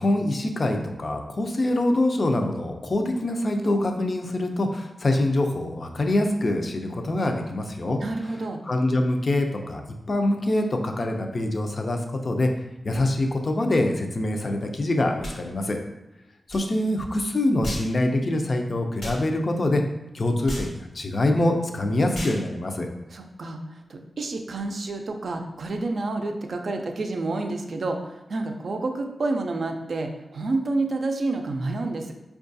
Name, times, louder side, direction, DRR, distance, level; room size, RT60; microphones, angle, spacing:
voice 1, 0.0-8.0 8.6-9.8 10.1-12.0 12.2-12.5 12.8-15.8 16.5-19.8 20.1-22.9, left 1 dB, 50° left, 4 dB, 0.4 m, -24 dB
voice 2, 8.0-8.6 23.1-23.6 23.9-32.1, right 2 dB, 65° right, 4 dB, 0.4 m, -29 dB
sound 1, 15.2-15.4 16.5-16.6 17.6-17.9 19.0-19.2 20.5-20.7 22.1-22.4, equal, 80° left, 1.1 m, -33 dB
4.5 x 2.3 x 2.6 m, 0.96 s
wide cardioid pair, 80°, 0 cm